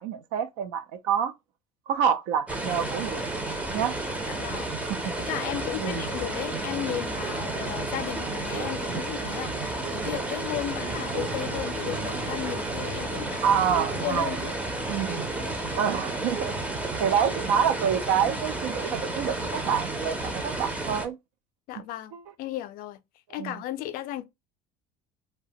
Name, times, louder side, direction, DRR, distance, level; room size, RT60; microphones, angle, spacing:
voice 1, 0.0-1.3 1.9-3.4 3.7-4.0 5.8-6.1 13.4-14.4 14.9-15.3 15.8-16.5 17.0-21.2 22.1-22.2 23.3-23.6, right 8 dB, 90° right, 0.4 m, -27 dB
sound 1, 2.5-21.1, right 2 dB, 10° right, 0.5 m, -32 dB
voice 2, 4.3-4.7 5.3-13.4 14.0-14.4 21.7-22.1 22.4-23.0 23.3-24.2, left 13 dB, 55° left, 0.4 m, -34 dB
sound 2, 6.6-17.0, right 4 dB, 65° right, 0.8 m, -40 dB
2.8 x 2.1 x 2.6 m
cardioid pair, 125°, 17 cm